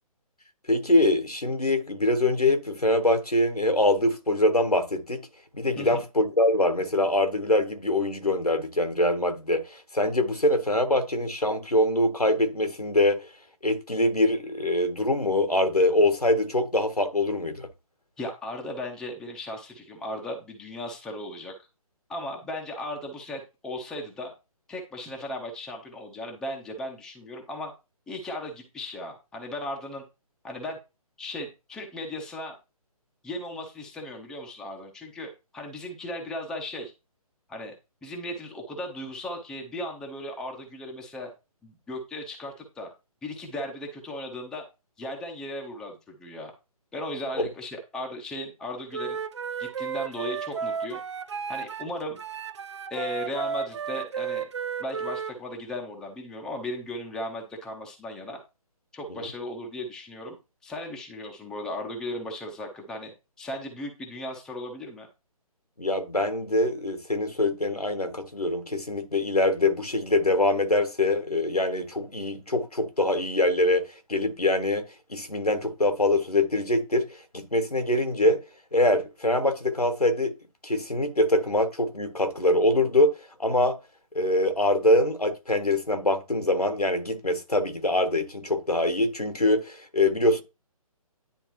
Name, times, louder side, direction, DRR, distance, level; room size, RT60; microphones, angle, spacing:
voice 1, 0.7-5.3 5.6-13.2 13.6-17.7 47.4-47.5 59.2-59.3 65.8-74.8 75.1-78.4 78.7-80.3 80.6-83.1 83.4-83.8 84.1-90.4, left 1 dB, 85° left, 1.5 m, -24 dB
voice 2, 18.2-21.5 22.1-24.3 24.7-27.7 28.1-30.0 30.4-30.8 31.2-32.6 33.2-36.9 37.5-37.7 38.0-41.3 41.6-42.9 43.2-44.7 45.0-46.5 46.9-49.2 49.6-51.0 51.5-52.2 52.9-54.5 54.8-58.4 58.9-60.4 60.6-65.1, left 1 dB, 5° left, 0.8 m, -36 dB
Wind instrument woodwind instrument, 48.9-51.9 52.2-55.3, right 6 dB, 50° right, 0.6 m, -33 dB
10.0 x 3.4 x 3.1 m
figure-of-eight pair, 140°, 19 cm